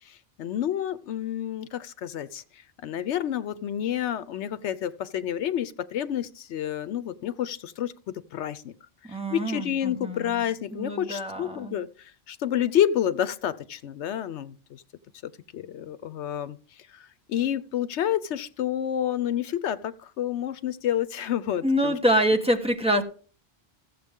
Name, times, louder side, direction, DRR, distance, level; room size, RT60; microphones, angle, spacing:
voice 1, 0.1-2.4 2.8-8.7 9.1-14.8 15.2-16.6 16.9-21.9, left 10 dB, 80° left, 1.0 m, -29 dB
voice 2, 9.0-10.5 10.7-11.8 21.6-23.0, equal, 5° right, 1.2 m, -25 dB
14.5 x 7.4 x 3.6 m
omnidirectional pair, 1.1 m